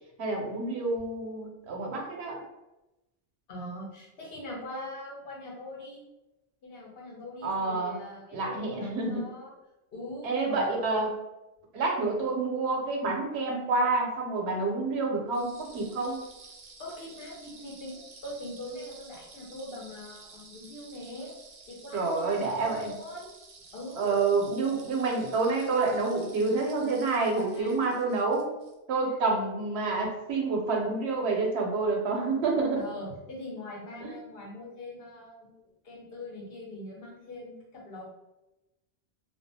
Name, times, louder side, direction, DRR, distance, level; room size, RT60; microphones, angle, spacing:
voice 1, 0.2-2.4 7.4-8.0 8.3-9.2 10.2-11.1 11.7-16.2 21.9-22.9 23.9-28.4 28.9-32.8 34.0-34.1, right 3 dB, 90° right, 0 dB, 0.9 m, -28 dB
voice 2, 3.5-6.0 6.6-9.5 9.9-11.0 16.8-21.3 21.7-23.3 23.7-24.2 27.4-27.8 32.8-38.1, left 1 dB, 65° left, -3 dB, 0.9 m, -42 dB
sound 1, 15.3-28.7, right 4 dB, 55° right, 0.6 m, -52 dB
2.3 x 2.2 x 2.6 m, 0.97 s
omnidirectional pair, 1.1 m